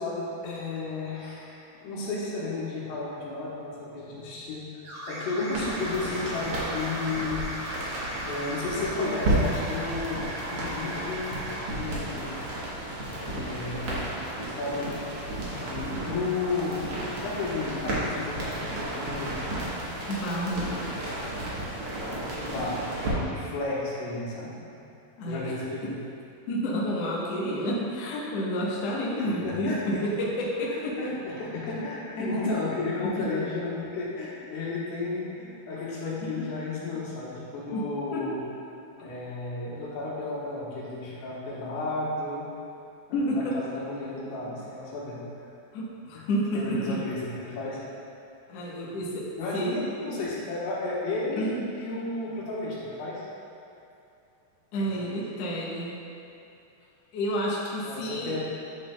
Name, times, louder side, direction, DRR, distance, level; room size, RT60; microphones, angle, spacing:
voice 1, 0.0-7.5 7.8-8.0 8.3-12.3 13.2-14.1 14.4-15.3 15.6-19.4 22.3-24.8 25.3-25.9 29.1-30.0 31.0-38.5 39.0-42.5 43.1-45.2 46.1-46.2 46.5-47.8 49.4-51.5 51.7-53.3 54.8-55.2 57.8-58.4, left 3 dB, 85° left, -6 dB, 3.2 m, -33 dB
sound 1, 4.8-11.7, right 1 dB, 70° right, 3.0 m, -37 dB
sound 2, 5.5-23.1, right 1 dB, 85° right, 1.2 m, -33 dB
voice 2, 20.1-20.7 25.2-25.5 26.5-30.9 33.0-33.3 37.7-37.8 38.1-38.2 43.1-43.5 45.7-47.0 48.5-49.2 49.5-49.7 51.4-51.6 54.7-55.9 57.1-58.3, equal, 65° left, -6 dB, 1.6 m, -29 dB
9.8 x 6.4 x 2.3 m, 2.7 s
omnidirectional pair, 4.5 m